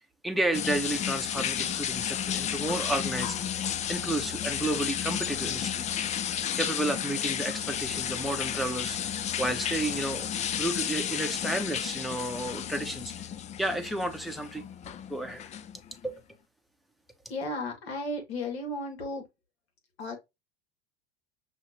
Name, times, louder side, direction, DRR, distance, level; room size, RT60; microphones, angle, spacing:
voice 1, 0.2-3.4 3.9-5.8 6.6-10.3 10.6-13.1 13.6-14.6 15.1-15.4 16.0-16.1, right 1 dB, ahead, 0.8 m, -32 dB
sound 1, 0.5-16.1, left 9 dB, 25° left, 0.4 m, -32 dB
voice 2, 17.3-19.3 20.0-20.2, left 1 dB, 75° left, 2.0 m, -34 dB
5.7 x 2.8 x 2.9 m
hypercardioid pair, 85°, 32 cm